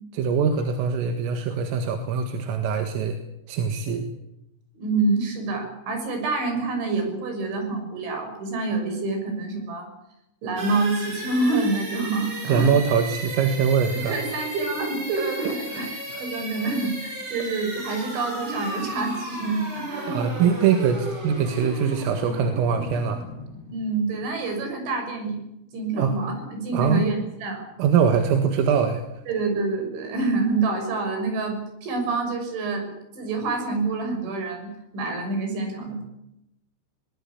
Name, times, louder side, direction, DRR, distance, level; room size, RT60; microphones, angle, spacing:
voice 1, 0.1-3.2 3.5-4.1 12.4-14.5 15.7-15.8 16.1-16.6 20.1-23.2 26.0-26.2 26.7-27.0 27.8-29.2, right 6 dB, 85° right, 6 dB, 4.4 m, -23 dB
voice 2, 4.7-9.9 10.4-12.7 13.9-20.3 23.7-25.4 25.7-27.7 29.3-36.0, right 3 dB, 65° right, 4 dB, 8.5 m, -27 dB
sound 1, 10.6-24.3, right 1 dB, 30° right, 6.9 m, -35 dB
23.0 x 20.0 x 8.5 m, 0.85 s
omnidirectional pair, 5.8 m